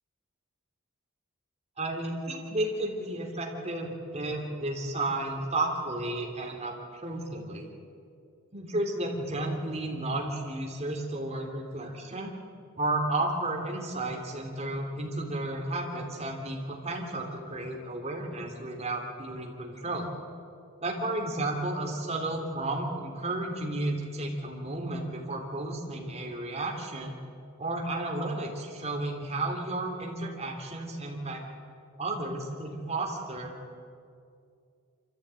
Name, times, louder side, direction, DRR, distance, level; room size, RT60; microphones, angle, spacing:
voice 1, 1.8-7.7 8.5-12.3 12.8-20.1 20.8-27.1 27.6-31.4 32.0-33.5, right 2 dB, 30° right, 1 dB, 3.3 m, -33 dB
25.5 x 14.5 x 9.1 m, 2.4 s
head